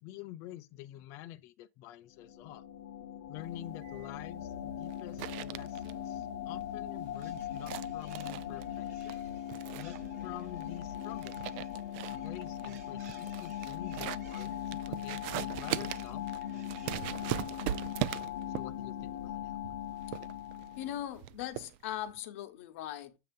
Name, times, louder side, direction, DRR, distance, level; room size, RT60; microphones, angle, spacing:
voice 1, 0.0-2.6 3.3-9.2 9.7-11.4 12.1-17.7 18.5-19.8, left 14 dB, 35° left, 0.5 m, -48 dB
sound 1, 2.2-21.1, left 10 dB, 80° left, 0.9 m, -40 dB
sound 2, 3.5-22.1, right 15 dB, 40° right, 0.3 m, -41 dB
sound 3, 7.0-16.9, right 7 dB, 85° right, 2.0 m, -61 dB
voice 2, 20.8-23.2, left 12 dB, 55° left, 1.0 m, -39 dB
7.6 x 2.9 x 5.1 m
supercardioid pair, 175°, 8 cm